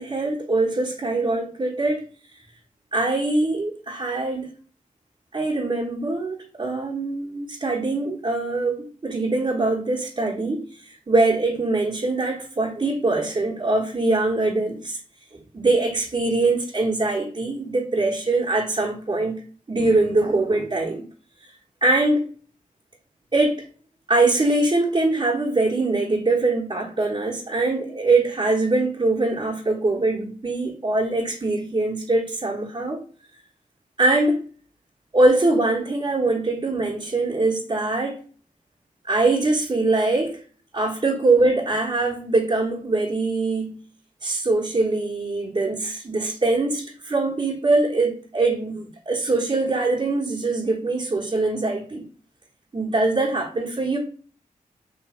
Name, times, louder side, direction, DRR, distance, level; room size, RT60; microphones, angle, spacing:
voice 1, 0.0-2.0 2.3-2.4 2.9-4.5 5.3-15.0 15.3-19.4 19.7-21.0 21.4-21.5 21.8-22.2 23.3-23.6 24.1-33.0 34.0-34.4 35.1-38.2 39.1-40.4 40.7-43.8 44.2-52.0 52.7-54.0, right 2 dB, 35° right, -5 dB, 1.3 m, -23 dB
3.2 x 3.1 x 4.3 m, 0.42 s
cardioid pair, 80°, 14 cm